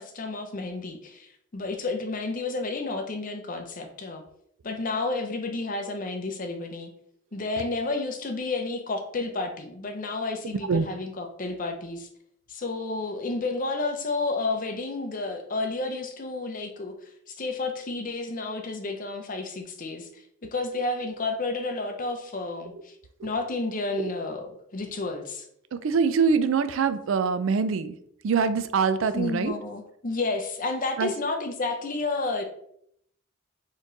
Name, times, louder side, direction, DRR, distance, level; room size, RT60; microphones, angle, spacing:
voice 1, 0.0-4.2 4.6-6.9 7.3-12.1 12.5-23.0 23.2-25.5 29.1-32.4, left 3 dB, 40° left, 6 dB, 0.7 m, -31 dB
voice 2, 25.7-28.0 28.2-29.5 31.0-31.1, right 5 dB, 70° right, 13 dB, 0.4 m, -24 dB
4.2 x 3.1 x 3.9 m, 0.70 s
head